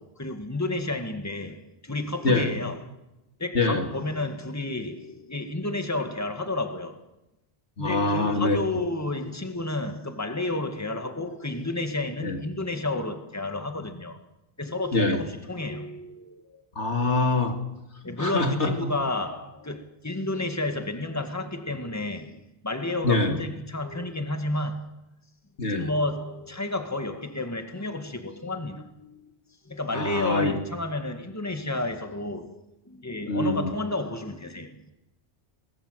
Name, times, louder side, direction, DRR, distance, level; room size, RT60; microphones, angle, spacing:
voice 1, 0.0-2.8 3.4-7.0 7.8-14.2 14.6-16.6 18.0-24.9 25.7-29.3 29.7-32.6 32.9-34.9, left 2 dB, 15° left, 2.0 m, -31 dB
voice 2, 7.8-8.6 12.2-12.4 14.9-15.2 16.8-17.6 18.2-18.9 23.0-23.3 25.6-25.9 29.9-30.6 33.3-33.7, left 2 dB, 90° left, 3.0 m, -24 dB
29.0 x 20.0 x 8.1 m
omnidirectional pair, 1.1 m